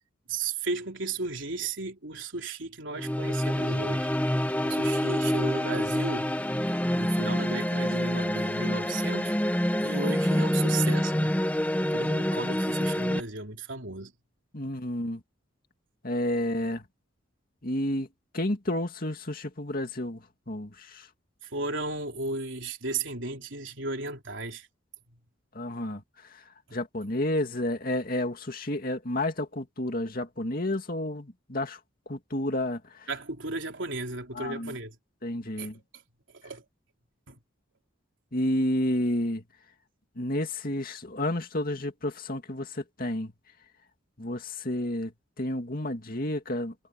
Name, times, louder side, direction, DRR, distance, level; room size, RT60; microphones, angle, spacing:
voice 1, 0.3-4.1 4.6-6.3 6.9-9.4 9.8-11.4 11.9-14.1 21.4-24.7 33.1-35.0 35.6-35.7 36.4-36.6 37.3-37.4, right 3 dB, 70° right, 3.8 m, -35 dB
sound 1, 2.9-13.2, equal, 10° left, 1.2 m, -27 dB
voice 2, 14.5-15.2 16.0-16.9 17.6-18.1 18.3-21.1 25.5-31.8 32.1-33.1 34.3-34.8 35.2-35.8 38.3-39.4 40.2-43.3 44.2-46.7, left 1 dB, 45° left, 2.5 m, -31 dB
head